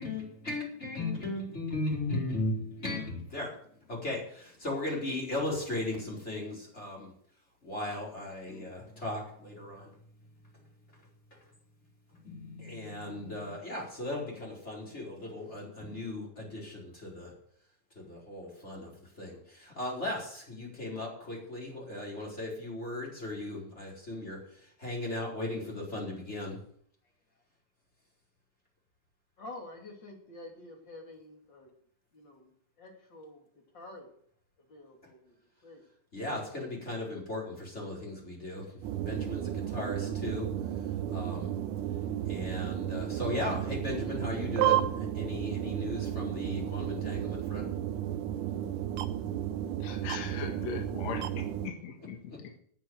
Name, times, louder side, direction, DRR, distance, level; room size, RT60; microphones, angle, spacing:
voice 1, 0.0-3.6 3.9-7.1 7.6-9.9 12.2-17.3 17.9-26.6 36.1-38.6 39.1-40.5 41.1-41.5 42.3-47.7 52.3-52.4, left 2 dB, 20° left, -3 dB, 4.6 m, -37 dB
voice 2, 29.4-31.7 32.1-32.5 32.8-34.1 34.7-35.4 35.6-35.9, left 2 dB, 35° left, 1 dB, 3.3 m, -48 dB
sound 1, 38.8-51.7, right 11 dB, 80° right, 2.2 m, -33 dB
voice 3, 49.8-52.6, left 6 dB, 60° left, 3 dB, 2.6 m, -40 dB
9.7 x 9.1 x 7.9 m, 0.62 s
omnidirectional pair, 3.7 m